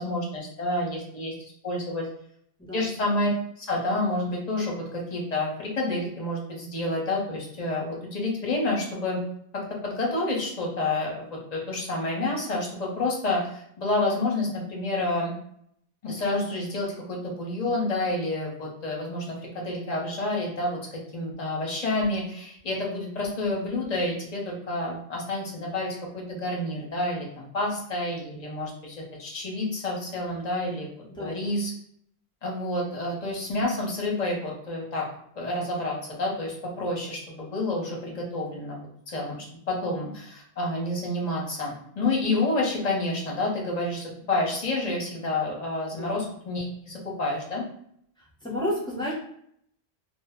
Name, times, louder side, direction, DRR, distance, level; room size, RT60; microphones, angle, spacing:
voice 1, 0.0-1.3 1.6-2.1 2.7-3.3 3.6-9.2 9.5-11.2 11.5-15.3 16.0-20.8 21.1-30.9 31.2-31.7 32.4-35.1 35.3-47.6, left 2 dB, 45° left, -2 dB, 0.7 m, -29 dB
voice 2, 31.1-31.4 46.0-46.1 48.4-49.1, left 1 dB, 5° left, -6 dB, 0.5 m, -31 dB
2.0 x 2.0 x 3.4 m, 0.69 s
omnidirectional pair, 1.1 m